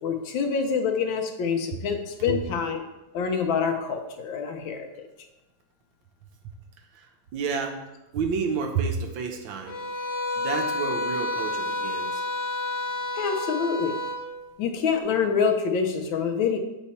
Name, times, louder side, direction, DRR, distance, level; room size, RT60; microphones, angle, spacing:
voice 1, 0.0-2.8 3.1-5.1 13.2-14.0 14.6-16.6, left 6 dB, 80° left, 5 dB, 1.5 m, -26 dB
voice 2, 6.9-7.8 8.1-9.8 10.4-12.2, right 5 dB, 80° right, 4 dB, 1.6 m, -30 dB
sound 1, 9.7-14.2, left 2 dB, 30° left, 0.7 m, -30 dB
7.3 x 4.1 x 4.2 m, 1.0 s
omnidirectional pair, 2.1 m